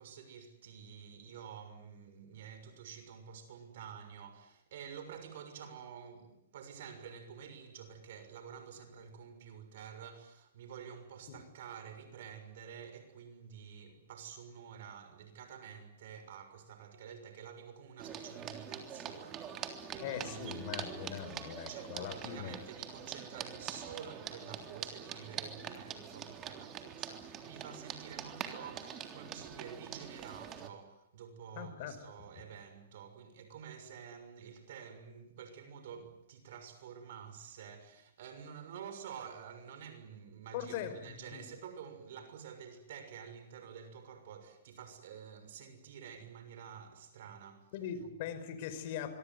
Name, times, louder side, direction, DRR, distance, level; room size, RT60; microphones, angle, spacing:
voice 1, 0.0-20.9 21.7-47.7, right 7 dB, 65° right, 6.5 m, -49 dB
sound 1, 18.0-30.7, right 8 dB, 30° right, 3.4 m, -44 dB
voice 2, 20.0-22.6 31.6-32.0 40.5-41.4 47.7-49.2, left 9 dB, 50° left, 5.3 m, -41 dB
25.5 x 24.0 x 9.5 m
hypercardioid pair, 135°, 0 cm